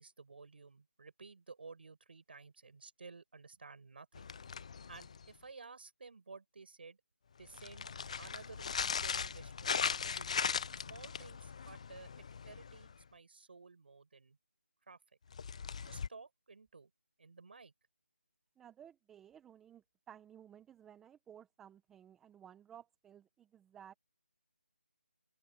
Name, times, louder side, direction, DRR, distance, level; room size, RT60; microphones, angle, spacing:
voice 1, 0.0-4.3 4.9-7.0 7.4-7.9 8.2-10.3 10.7-14.4 14.9-15.0 15.8-16.9 17.2-17.7, right 4 dB, 55° right, 6.1 m, -54 dB
sound 1, 4.1-5.4 7.4-13.0 15.3-16.1, left 6 dB, 30° left, 0.5 m, -39 dB
voice 2, 18.6-23.9, right 9 dB, 5° right, 1.0 m, -57 dB
open air
figure-of-eight pair, 170°, 7 cm